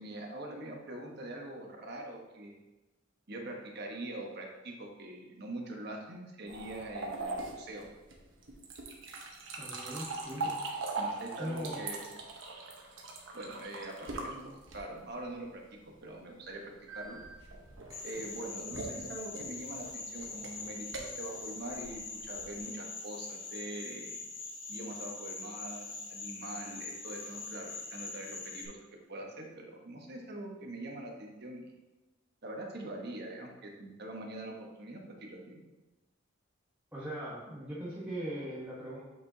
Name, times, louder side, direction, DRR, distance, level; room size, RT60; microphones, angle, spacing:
voice 1, 0.0-2.6 3.3-7.9 11.0-12.1 13.3-17.2 18.0-24.2 24.7-28.8 29.1-31.6 32.4-35.6, right 1 dB, 55° right, 1 dB, 1.1 m, -43 dB
sound 1, 6.5-15.1 16.9-22.6, right 3 dB, 80° right, 1.0 m, -41 dB
voice 2, 9.6-10.6 11.4-11.8 36.9-39.0, right 1 dB, 10° right, -9 dB, 1.2 m, -40 dB
sound 2, 17.9-28.7, left 4 dB, 90° left, 1.3 m, -43 dB
8.3 x 4.7 x 2.8 m, 1.1 s
head